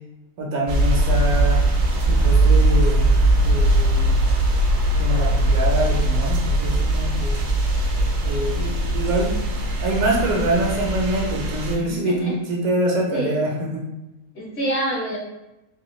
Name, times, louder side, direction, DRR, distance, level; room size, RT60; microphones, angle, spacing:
voice 1, 0.4-1.6 2.1-3.0 3.4-4.1 5.0-7.4 8.2-13.9, right 1 dB, 75° right, -1 dB, 1.3 m, -25 dB
sound 1, 0.7-11.7, right 1 dB, 60° right, 0.9 m, -20 dB
voice 2, 11.8-12.4 13.1-13.4 14.3-15.2, right 1 dB, 50° left, -5 dB, 1.1 m, -27 dB
3.3 x 3.1 x 3.0 m, 0.96 s
omnidirectional pair, 1.6 m